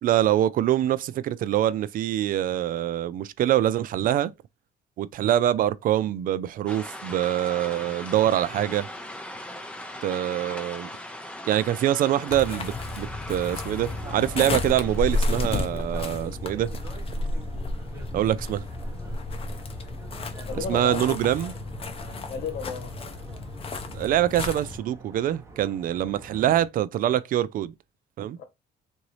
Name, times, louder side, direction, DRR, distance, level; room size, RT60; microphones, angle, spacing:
voice 1, 0.0-4.3 5.0-8.9 10.0-10.9 11.5-16.7 18.1-18.6 20.5-21.5 23.9-27.7 28.2-28.4, right 12 dB, 55° right, 0.4 m, -24 dB
sound 1, 6.7-15.6, left 1 dB, 5° left, 0.9 m, -40 dB
sound 2, 12.3-24.8, left 2 dB, 35° left, 0.8 m, -32 dB
sound 3, 13.8-26.7, right 3 dB, 15° right, 0.9 m, -46 dB
voice 2, 20.3-21.2 22.3-22.9 28.4-28.5, left 6 dB, 70° left, 1.1 m, -34 dB
3.8 x 2.6 x 3.1 m
cardioid pair, 110°, 17 cm